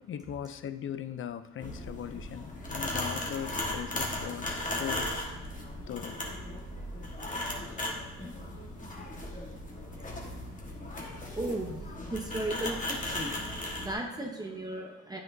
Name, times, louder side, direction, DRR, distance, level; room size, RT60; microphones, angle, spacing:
voice 1, 0.0-5.1 5.9-6.2, left 9 dB, 45° left, 0.4 m, -39 dB
sound 1, 1.6-13.9, left 1 dB, 25° left, 1.5 m, -37 dB
voice 2, 11.4-11.8 12.1-13.3 13.8-15.2, right 1 dB, 15° right, 0.9 m, -35 dB
9.2 x 5.9 x 2.7 m
cardioid pair, 90°, 30 cm